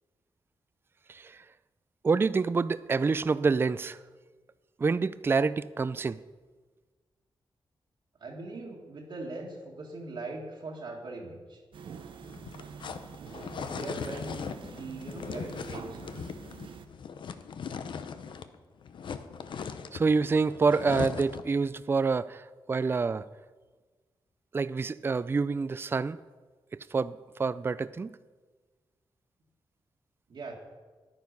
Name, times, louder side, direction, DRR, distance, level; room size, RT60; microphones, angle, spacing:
voice 1, 1.1-1.4 2.0-4.0 4.8-6.2 19.9-23.3 24.5-26.2 26.7-28.2, right 4 dB, 25° right, 16 dB, 0.3 m, -27 dB
voice 2, 8.2-11.6 13.6-16.1 30.3-30.5, right 2 dB, 65° right, -2 dB, 1.8 m, -41 dB
sound 1, 11.7-16.9, right 6 dB, 80° right, 0.8 m, -45 dB
sound 2, 12.2-18.6 18.8-21.5, left 6 dB, 70° left, 0.7 m, -39 dB
10.5 x 9.3 x 5.3 m, 1.4 s
cardioid pair, 95°, 9 cm